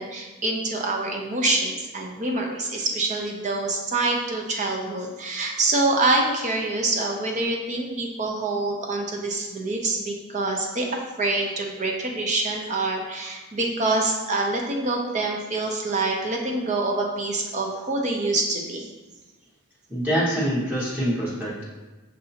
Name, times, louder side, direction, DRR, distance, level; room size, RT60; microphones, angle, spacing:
voice 1, 0.0-18.9, right 2 dB, 30° right, 0 dB, 0.5 m, -26 dB
voice 2, 19.9-21.6, equal, 5° right, -9 dB, 1.0 m, -25 dB
6.5 x 2.7 x 2.8 m, 1.2 s
head